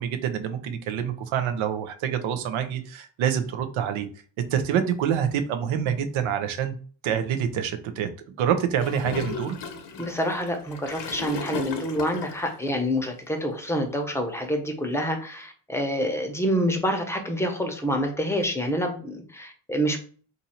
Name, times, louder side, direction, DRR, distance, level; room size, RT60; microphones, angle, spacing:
voice 1, 0.0-4.1 4.5-6.7 7.0-9.6, right 8 dB, 70° right, 9 dB, 0.7 m, -26 dB
Gurgling / Toilet flush, 8.8-12.5, left 5 dB, 55° left, 0.9 m, -35 dB
voice 2, 10.0-20.0, equal, 5° left, 3 dB, 0.8 m, -27 dB
2.7 x 2.6 x 4.3 m, 0.41 s
cardioid pair, 90°, 49 cm